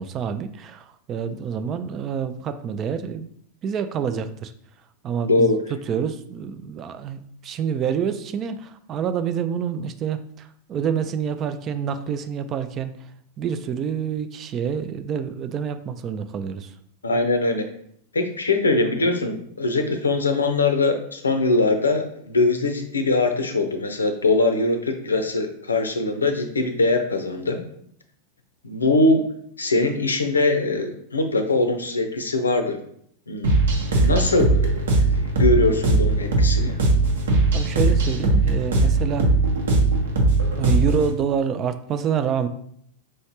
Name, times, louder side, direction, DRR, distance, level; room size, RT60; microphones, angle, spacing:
voice 1, 0.0-3.3 3.6-4.5 5.0-5.5 5.9-12.9 13.4-16.7 37.5-39.3 40.6-42.5, right 7 dB, 30° right, 9 dB, 0.3 m, -27 dB
voice 2, 5.2-5.6 17.0-17.6 18.1-27.6 28.6-29.2 29.6-32.8 33.3-33.5 34.0-36.8, left 2 dB, 75° left, 7 dB, 0.5 m, -22 dB
sound 1, 33.4-41.1, right 2 dB, 65° right, 0.9 m, -19 dB
4.7 x 3.1 x 2.9 m, 0.66 s
figure-of-eight pair, 90°, 0 cm